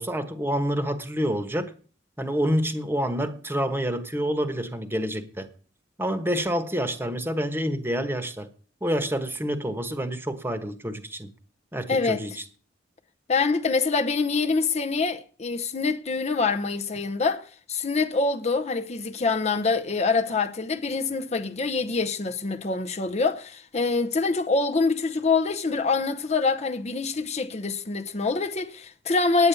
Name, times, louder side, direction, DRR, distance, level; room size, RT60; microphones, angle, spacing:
voice 1, 0.0-1.7 2.2-5.5 6.0-8.5 8.8-11.3 11.7-12.4, equal, 10° right, 1.1 m, -28 dB
voice 2, 11.9-12.2 13.3-29.5, left 4 dB, 35° left, 0.7 m, -25 dB
9.4 x 9.3 x 6.9 m
head